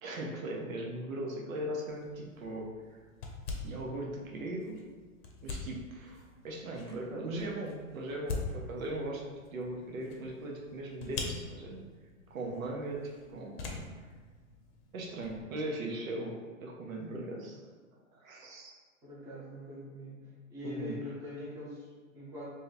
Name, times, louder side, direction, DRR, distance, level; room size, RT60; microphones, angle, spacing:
voice 1, 0.0-2.7 3.6-4.8 5.4-9.2 9.5-11.8 12.3-13.8 14.9-17.6 18.1-18.8 20.6-21.0, right 1 dB, 75° right, -1 dB, 1.0 m, -39 dB
sound 1, 1.9-15.4, left 3 dB, 45° left, 0.7 m, -44 dB
voice 2, 19.0-20.2 20.5-22.5, left 1 dB, 10° right, -9 dB, 0.6 m, -43 dB
3.1 x 2.8 x 4.0 m, 1.5 s
hypercardioid pair, 150°, 41 cm